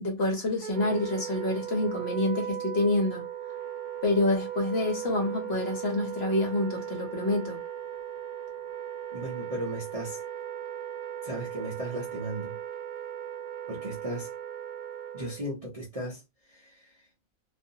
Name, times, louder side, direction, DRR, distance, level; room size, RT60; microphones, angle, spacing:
voice 1, 0.0-3.2 4.0-7.6, left 2 dB, 50° left, 0.9 m, -27 dB
Wind instrument woodwind instrument, 0.6-15.5, right 10 dB, 75° right, 1.1 m, -37 dB
voice 2, 9.1-10.2 11.2-12.6 13.7-14.3 15.1-16.2 16.5-17.0, right 1 dB, 40° right, 0.5 m, -36 dB
2.5 x 2.5 x 2.7 m
omnidirectional pair, 1.5 m